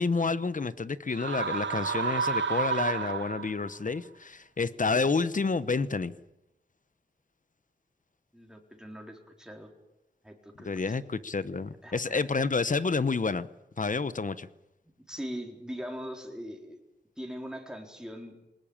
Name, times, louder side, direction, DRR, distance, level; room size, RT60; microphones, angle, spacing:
voice 1, 0.0-6.1 10.6-13.5 13.8-14.5, left 4 dB, 45° left, 15 dB, 0.9 m, -29 dB
sound 1, 1.1-3.7, right 6 dB, 85° right, 0.9 m, -31 dB
voice 2, 8.3-9.7 10.2-11.0 11.8-12.2 15.1-16.8 17.2-18.5, equal, 5° right, 2 dB, 4.1 m, -41 dB
22.5 x 20.0 x 8.8 m, 0.90 s
wide cardioid pair, 95°, 18 cm